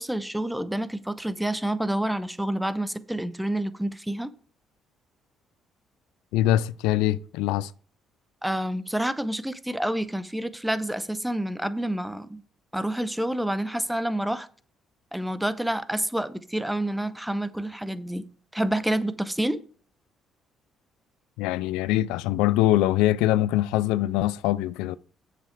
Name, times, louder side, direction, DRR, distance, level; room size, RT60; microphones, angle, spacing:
voice 1, 0.0-4.3 8.4-12.4 12.7-14.5 15.1-18.3 18.5-19.6, right 1 dB, 5° right, 0.8 m, -28 dB
voice 2, 6.3-7.7 21.4-25.0, left 14 dB, 90° left, 0.3 m, -23 dB
7.5 x 6.7 x 4.7 m
supercardioid pair, 75°, 0 cm